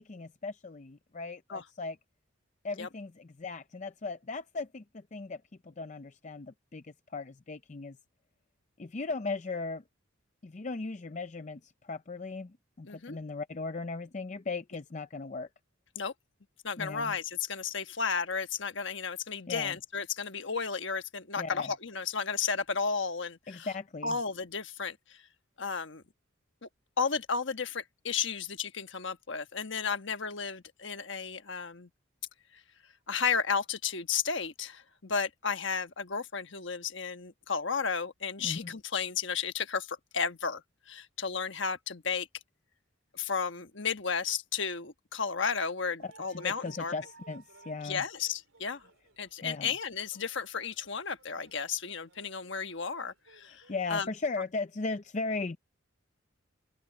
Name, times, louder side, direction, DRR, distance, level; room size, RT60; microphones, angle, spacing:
voice 1, 0.0-2.0 2.6-8.0 8.8-9.8 10.4-15.5 16.8-17.1 19.5-19.8 21.4-21.7 23.5-24.2 38.4-38.7 46.0-48.0 49.4-49.7 53.7-55.6, left 3 dB, 35° left, 0.5 m, -37 dB
voice 2, 12.9-13.2 15.9-16.1 16.6-23.7 24.0-25.2 25.6-26.0 27.0-31.9 33.1-40.6 40.9-42.3 43.1-46.9 47.8-48.8 49.2-53.6 53.9-54.1, left 6 dB, 60° left, 1.3 m, -33 dB
sound 1, 46.0-53.8, right 4 dB, 75° right, 4.1 m, -58 dB
open air
head